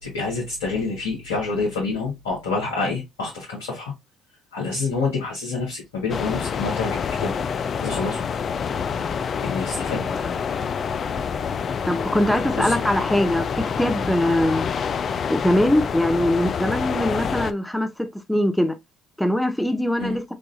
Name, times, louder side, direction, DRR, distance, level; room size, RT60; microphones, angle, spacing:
voice 1, 0.0-3.9 4.5-7.4 7.8-8.2 9.4-10.0 12.5-12.8 20.0-20.2, left 3 dB, 85° left, 1.2 m, -27 dB
sound 1, 6.1-17.5, left 6 dB, 50° left, 0.4 m, -27 dB
voice 2, 11.9-14.7 15.3-18.8 19.2-20.2, left 1 dB, 5° left, 0.6 m, -22 dB
4.8 x 2.5 x 2.5 m
hypercardioid pair, 55°, 0 cm